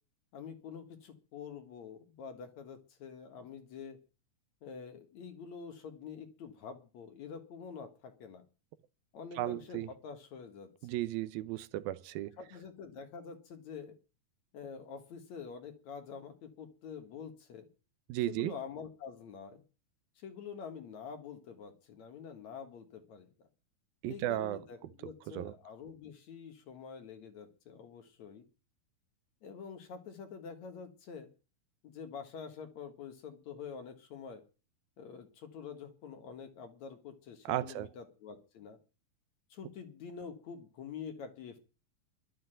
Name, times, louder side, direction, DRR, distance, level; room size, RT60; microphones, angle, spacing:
voice 1, 0.3-4.0 4.6-8.4 9.1-11.0 12.4-13.9 14.5-17.7 18.3-19.6 20.2-23.5 24.0-28.4 29.4-31.3 31.8-34.4 35.0-38.8 39.5-41.6, left 6 dB, 55° left, 2.5 m, -47 dB
voice 2, 9.4-9.9 10.8-12.3 18.1-18.5 24.0-24.6 25.4-25.5 37.5-37.9, right 15 dB, 80° right, 2.6 m, -34 dB
12.0 x 7.8 x 8.9 m
omnidirectional pair, 4.2 m